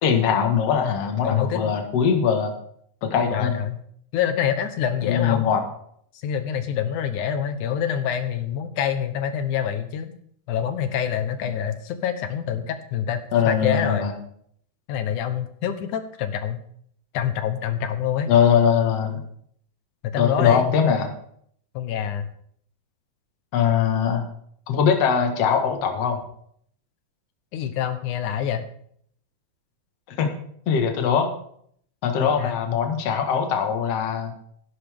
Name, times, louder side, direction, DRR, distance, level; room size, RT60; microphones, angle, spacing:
voice 1, 0.0-2.5 3.0-3.6 5.0-5.6 13.3-14.1 18.3-19.2 20.2-21.1 23.5-24.2 24.7-26.2 30.1-30.3 30.7-31.3 32.0-34.3, left 7 dB, 55° left, 4 dB, 2.5 m, -21 dB
voice 2, 1.2-1.7 3.3-3.8 4.1-5.5 6.2-10.2 10.5-14.1 14.9-16.6 17.1-18.3 20.0-20.7 21.7-22.3 27.5-28.7 32.2-32.6, left 9 dB, 75° left, 9 dB, 2.5 m, -26 dB
15.5 x 11.5 x 3.6 m, 0.65 s
omnidirectional pair, 3.7 m